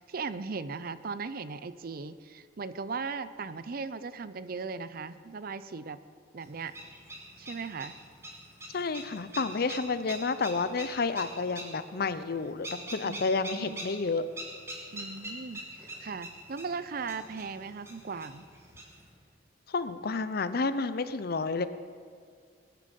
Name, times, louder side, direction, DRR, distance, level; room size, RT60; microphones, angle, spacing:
voice 1, 0.0-6.0 6.3-6.7 7.4-7.9 13.0-13.8 14.9-18.5, right 4 dB, 55° right, 14 dB, 0.5 m, -38 dB
sound 1, 6.4-19.1, right 1 dB, 15° right, 2.4 m, -44 dB
voice 2, 8.7-14.2 19.7-21.7, left 4 dB, 60° left, 13 dB, 0.7 m, -30 dB
21.0 x 9.2 x 5.3 m, 2.1 s
head